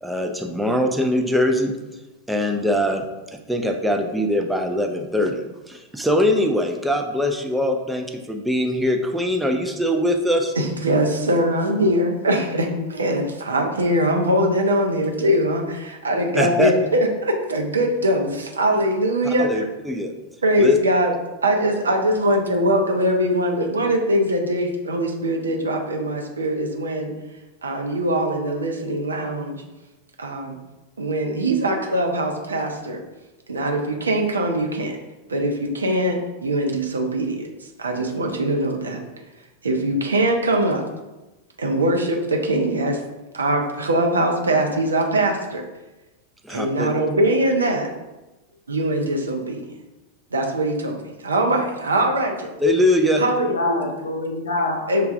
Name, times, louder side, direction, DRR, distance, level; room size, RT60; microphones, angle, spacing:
voice 1, 0.0-1.7 2.3-3.0 3.5-10.5 16.3-16.7 19.2-20.1 20.6-20.8 46.4-46.9 52.6-53.2, left 1 dB, 5° right, 2 dB, 0.4 m, -22 dB
voice 2, 10.6-19.6 20.4-21.1 21.4-27.1 27.6-29.6 30.2-30.6 31.0-33.0 33.5-35.0 35.3-37.5 37.8-39.0 39.6-40.8 41.6-43.0 43.3-45.6 46.5-47.9 48.7-49.6 50.3-52.5 53.2-53.8 54.9-55.1, right 1 dB, 75° right, 2 dB, 0.5 m, -22 dB
voice 3, 53.1-55.1, left 2 dB, 65° left, 3 dB, 0.6 m, -27 dB
6.5 x 2.3 x 2.4 m, 1.1 s
figure-of-eight pair, 90°, 0 cm